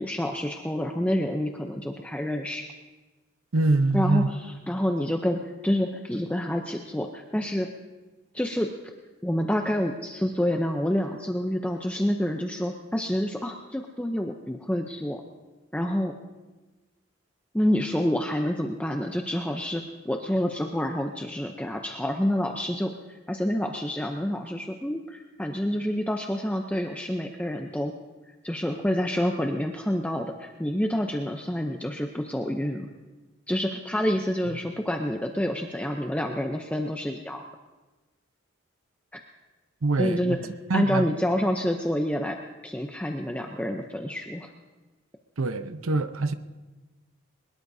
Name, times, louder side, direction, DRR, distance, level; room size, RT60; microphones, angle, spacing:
voice 1, 0.0-2.6 3.9-7.7 8.3-8.7 9.2-15.2 15.7-16.1 17.5-27.9 28.4-32.9 33.5-37.5 39.1-39.2 40.0-40.4 40.7-42.4 42.6-44.5, equal, 5° left, 2 dB, 0.6 m, -28 dB
voice 2, 3.5-4.3 39.8-40.4 40.7-41.1 45.4-46.3, right 3 dB, 90° right, 11 dB, 0.8 m, -24 dB
22.5 x 20.5 x 2.7 m, 1.2 s
head